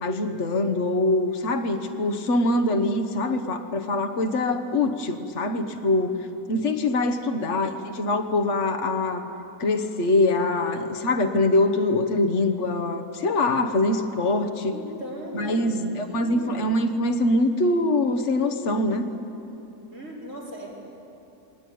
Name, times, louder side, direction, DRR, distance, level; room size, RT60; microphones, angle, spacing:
voice 1, 0.0-9.3 9.6-14.7 15.3-19.1, left 2 dB, 55° left, 7 dB, 1.5 m, -24 dB
voice 2, 7.1-7.7 14.7-16.7 19.9-20.7, left 1 dB, 60° right, -4 dB, 4.7 m, -37 dB
21.0 x 19.5 x 9.3 m, 2.8 s
omnidirectional pair, 1.5 m